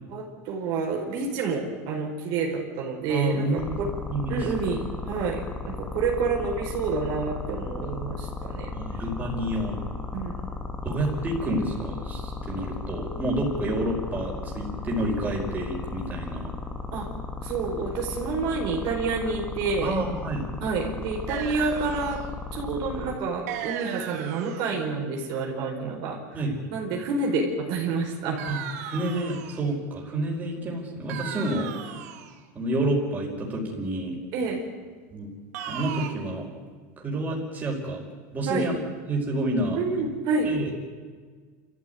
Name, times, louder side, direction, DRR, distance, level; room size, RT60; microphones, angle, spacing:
voice 1, 0.1-3.9 4.3-8.7 10.1-10.3 16.9-17.1 17.4-20.0 20.6-22.2 22.5-26.4 26.7-28.4 34.3-34.6 38.5-38.7 39.7-40.5, right 4 dB, 55° right, 0 dB, 4.8 m, -28 dB
voice 2, 3.1-3.8 4.1-4.4 8.7-9.8 10.8-16.5 19.8-20.4 26.3-26.5 28.9-31.7 32.5-34.1 35.1-35.3 35.7-36.5 37.0-38.0 38.3-38.7 39.1-39.8 40.4-40.7, right 1 dB, 20° right, -1 dB, 5.1 m, -29 dB
sound 1, 3.6-23.1, left 4 dB, 15° left, 2.1 m, -35 dB
sound 2, 21.3-22.3 23.5-24.8 28.4-29.7 31.1-32.4 35.5-36.1, right 9 dB, 70° right, 2.7 m, -36 dB
28.0 x 14.5 x 9.4 m, 1.6 s
supercardioid pair, 145°, 9 cm